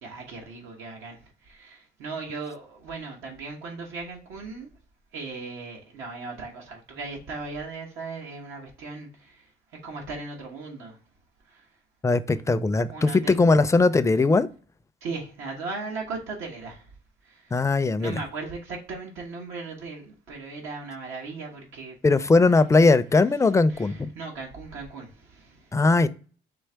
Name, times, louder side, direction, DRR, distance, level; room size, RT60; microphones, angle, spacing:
voice 1, 0.0-4.7 5.1-9.5 9.8-11.0 11.5-11.6 12.3-12.4 12.9-13.5 15.0-16.9 17.2-17.6 18.0-21.9 23.7-25.7, right 3 dB, 90° right, 1.2 m, -37 dB
voice 2, 12.0-14.5 17.5-18.2 22.0-24.1 25.7-26.1, left 3 dB, 15° left, 0.4 m, -20 dB
4.5 x 3.3 x 3.3 m
cardioid pair, 90°, 20 cm